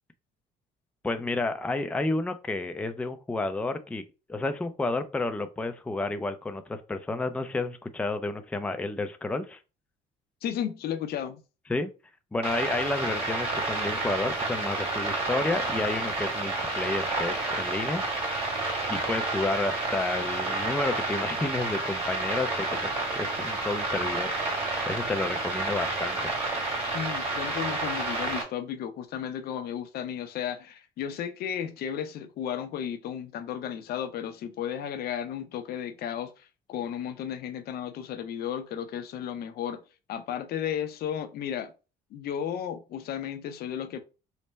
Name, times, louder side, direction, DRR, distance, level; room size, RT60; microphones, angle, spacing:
voice 1, 1.0-4.0 4.3-9.6 11.7-11.9 12.3-18.0 18.9-22.8 23.1-26.3, left 2 dB, 5° left, 0.4 m, -31 dB
voice 2, 10.4-11.4 26.9-39.8 40.1-41.7 42.1-44.0, left 9 dB, 65° left, 0.6 m, -34 dB
sound 1, 12.4-28.4, right 2 dB, 35° right, 1.9 m, -30 dB
3.3 x 2.1 x 4.0 m
cardioid pair, 110°, 17 cm